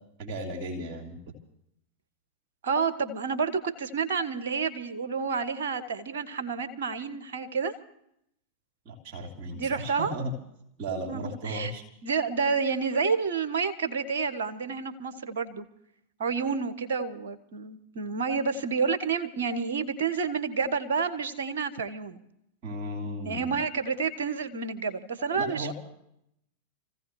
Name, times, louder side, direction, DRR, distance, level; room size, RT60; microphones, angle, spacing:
voice 1, 0.2-1.2 8.8-10.3 10.8-11.8 22.6-23.5 25.3-25.7, right 1 dB, 45° right, 1 dB, 3.1 m, -35 dB
voice 2, 2.6-7.7 9.5-10.1 11.1-11.7 12.0-15.6 16.2-22.2 23.2-25.7, right 5 dB, 60° right, 11 dB, 1.4 m, -29 dB
28.5 x 15.5 x 3.2 m, 0.74 s
figure-of-eight pair, 90°, 0 cm